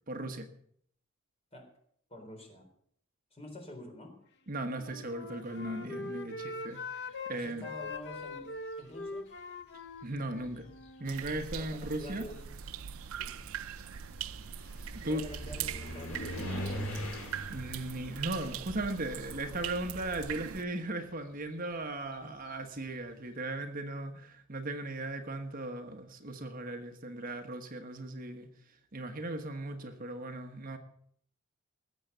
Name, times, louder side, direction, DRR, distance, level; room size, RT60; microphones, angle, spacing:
voice 1, 0.1-0.5 4.5-7.7 10.0-10.7 11.0-12.2 15.0-15.2 17.5-28.5 28.9-30.8, right 2 dB, 40° right, 6 dB, 1.3 m, -37 dB
voice 2, 2.1-2.7 3.3-4.2 7.3-8.5 8.8-9.3 11.6-12.4 13.2-13.5 15.0-16.5 22.2-22.3, left 1 dB, 30° left, 2 dB, 3.8 m, -47 dB
Wind instrument woodwind instrument, 4.6-7.3 7.6-11.2, left 3 dB, 55° left, 1.0 m, -42 dB
sound 1, 7.8-8.4 9.4-9.5 10.0-20.0 20.2-22.9, equal, 75° left, 4.4 m, -43 dB
sound 2, 11.1-20.6, right 8 dB, 75° right, 0.5 m, -42 dB
19.5 x 7.8 x 6.8 m, 0.65 s
head